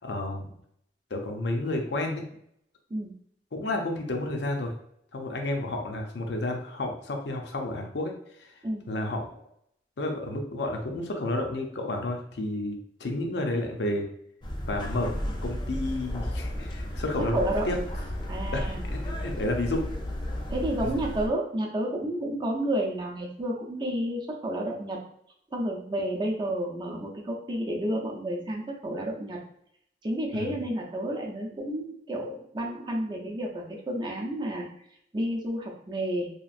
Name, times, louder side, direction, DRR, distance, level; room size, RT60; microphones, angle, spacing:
voice 1, 0.0-0.5 1.1-2.2 3.5-4.7 5.1-8.1 8.4-8.5 8.9-9.3 10.0-14.1 14.7-17.8 18.5-19.9 30.3-30.5, left 1 dB, 70° left, 3 dB, 0.6 m, -31 dB
sound 1, 14.4-21.3, left 1 dB, 25° left, 0.4 m, -33 dB
voice 2, 17.2-17.7 18.3-18.8 20.5-25.0 25.5-29.4 30.0-34.7 35.1-36.3, right 1 dB, 25° right, 0 dB, 0.5 m, -31 dB
2.9 x 2.4 x 2.4 m, 0.70 s
head